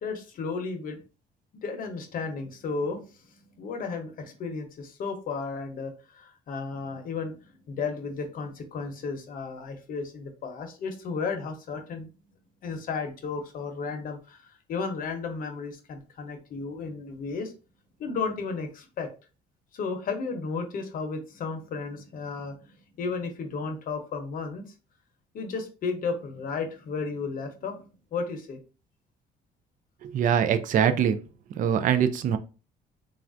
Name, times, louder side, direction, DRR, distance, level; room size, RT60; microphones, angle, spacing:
voice 1, 0.0-1.0 1.6-12.1 12.6-17.5 18.0-19.1 19.7-24.6 25.3-28.6, left 4 dB, 55° left, 5 dB, 0.7 m, -34 dB
voice 2, 30.0-31.2 31.6-32.4, right 8 dB, 50° right, 10 dB, 0.4 m, -23 dB
3.2 x 2.4 x 2.5 m, 0.33 s
cardioid pair, 110°, 17 cm